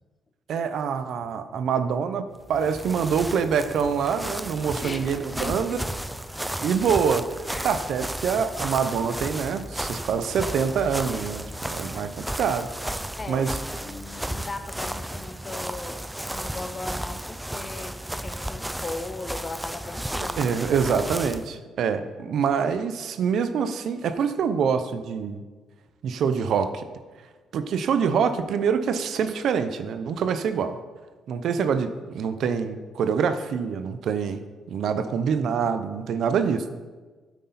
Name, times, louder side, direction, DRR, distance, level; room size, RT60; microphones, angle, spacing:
voice 1, 0.5-2.2 2.5-5.8 6.6-7.2 7.6-11.4 11.7-12.1 12.3-12.7 13.3-13.5 20.4-25.4 26.0-26.8 27.5-30.8 31.3-34.4 34.7-36.7, right 6 dB, 70° right, 10 dB, 0.7 m, -25 dB
sound 1, 2.4-21.5, right 1 dB, 5° right, 0.4 m, -34 dB
voice 2, 4.8-5.8 7.5-7.7 13.2-16.0 16.3-18.0 18.2-21.1, left 3 dB, 30° left, 7 dB, 1.0 m, -38 dB
9.4 x 8.3 x 4.2 m, 1.3 s
cardioid pair, 90°, 0 cm